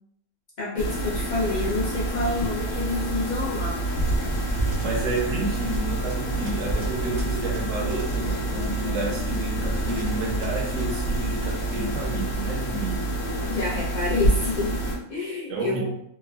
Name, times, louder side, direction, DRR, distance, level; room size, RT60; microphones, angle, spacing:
voice 1, 0.6-3.8 13.4-14.7 15.1-15.9, left 3 dB, 55° left, -5 dB, 0.5 m, -28 dB
sound 1, 0.8-15.0, right 2 dB, 80° left, 1.1 m, -28 dB
sound 2, 4.0-12.4, equal, 60° right, 0.6 m, -35 dB
voice 2, 4.5-13.1 15.5-15.8, right 2 dB, 80° right, 0 dB, 1.1 m, -30 dB
3.2 x 2.1 x 2.2 m, 0.74 s
omnidirectional pair, 1.4 m